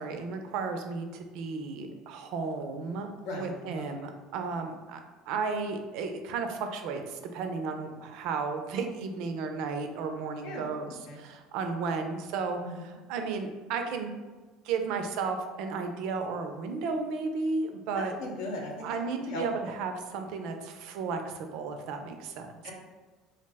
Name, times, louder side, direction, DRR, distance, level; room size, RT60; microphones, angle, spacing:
voice 1, 0.0-3.1 3.3-5.0 5.3-14.1 14.6-18.1 18.8-22.7, right 4 dB, 70° right, 6 dB, 0.3 m, -34 dB
voice 2, 3.2-3.9 10.4-10.6 11.1-11.2 12.6-13.0 17.9-19.0 19.3-19.7 22.6-22.7, left 1 dB, 75° left, -1 dB, 0.7 m, -38 dB
2.4 x 2.0 x 3.3 m, 1.3 s
supercardioid pair, 90°, 0 cm